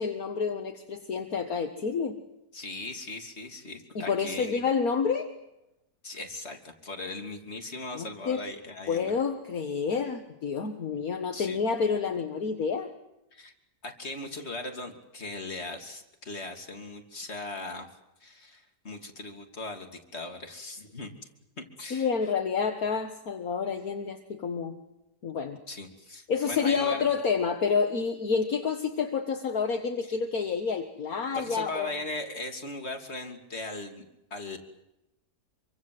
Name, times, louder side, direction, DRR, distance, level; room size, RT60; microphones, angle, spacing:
voice 1, 0.0-2.2 4.0-5.3 7.9-8.4 8.9-12.9 21.9-24.8 25.2-25.6 26.3-31.9, left 5 dB, 60° left, 5 dB, 2.0 m, -29 dB
voice 2, 2.5-4.6 6.0-9.1 11.3-11.6 13.3-13.5 13.8-17.9 18.2-21.1 21.6-22.1 25.7-27.1 30.0-30.2 31.3-34.0 34.3-34.6, left 2 dB, 40° left, 3 dB, 3.2 m, -39 dB
26.5 x 24.5 x 7.9 m, 0.91 s
omnidirectional pair, 1.7 m